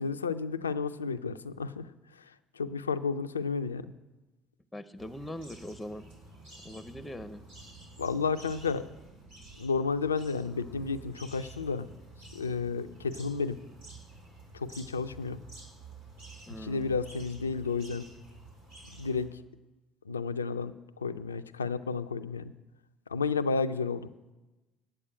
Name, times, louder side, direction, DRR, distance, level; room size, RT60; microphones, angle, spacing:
voice 1, 0.0-1.9 2.6-3.9 8.0-8.9 9.6-11.9 12.3-13.6 14.5-15.4 16.6-18.1 19.0-19.3 20.1-22.5 23.1-24.1, left 5 dB, 90° left, 12 dB, 0.3 m, -32 dB
voice 2, 4.7-6.0 6.6-7.4 16.5-17.0, equal, 10° left, 14 dB, 0.7 m, -41 dB
sound 1, 5.0-19.3, right 3 dB, 80° right, 3.5 m, -50 dB
8.9 x 8.4 x 8.8 m, 1.1 s
figure-of-eight pair, 55°, 0 cm